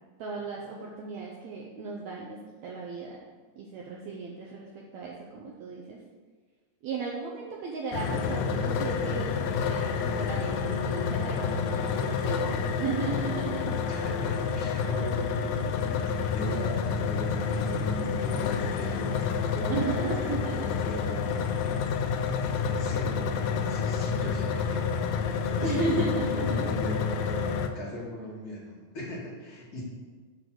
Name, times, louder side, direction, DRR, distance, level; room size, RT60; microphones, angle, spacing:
voice 1, 0.2-3.2 3.6-6.0 6.8-13.8 19.7-20.7 25.6-26.7, right 4 dB, 70° right, -2 dB, 1.8 m, -35 dB
sound 1, 7.9-27.7, left 6 dB, 90° left, 2.3 m, -29 dB
voice 2, 13.9-19.2 19.5-21.4 22.6-27.5 27.7-29.8, equal, 30° left, -6 dB, 2.5 m, -38 dB
9.8 x 3.9 x 6.1 m, 1.5 s
omnidirectional pair, 3.8 m